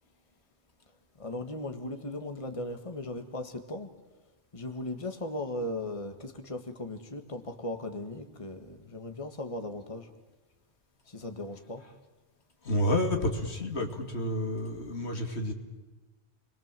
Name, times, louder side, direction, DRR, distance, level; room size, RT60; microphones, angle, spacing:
voice 1, 1.2-3.9 4.5-10.1 11.1-11.8, left 1 dB, 30° left, 6 dB, 1.8 m, -37 dB
voice 2, 12.6-15.5, left 1 dB, 75° left, 4 dB, 2.9 m, -30 dB
29.5 x 22.0 x 7.6 m, 1.2 s
omnidirectional pair, 1.1 m